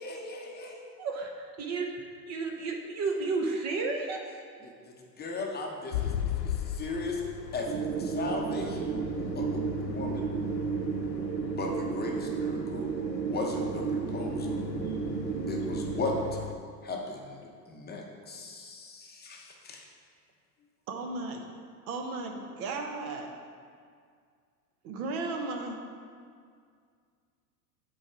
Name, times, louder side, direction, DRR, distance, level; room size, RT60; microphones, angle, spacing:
voice 1, 0.0-0.9 4.6-4.7 5.2-6.1 6.8-7.2 7.5-7.7 8.0-8.9 9.4-9.5 9.8-10.2 11.4-12.8 13.2-14.6 15.5-16.1 16.8-17.4 17.7-19.8, left 3 dB, 20° left, 0.9 m, -36 dB
voice 2, 1.0-1.9 2.3-4.2, right 4 dB, 35° right, 0.8 m, -32 dB
sound 1, 5.9-16.5, left 11 dB, 85° left, 0.6 m, -38 dB
sound 2, 7.6-16.2, right 6 dB, 80° right, 0.8 m, -33 dB
voice 3, 20.9-21.5 21.9-23.3 24.8-25.8, right 3 dB, 60° right, 1.1 m, -35 dB
7.4 x 4.5 x 4.9 m
hypercardioid pair, 100°, 49 cm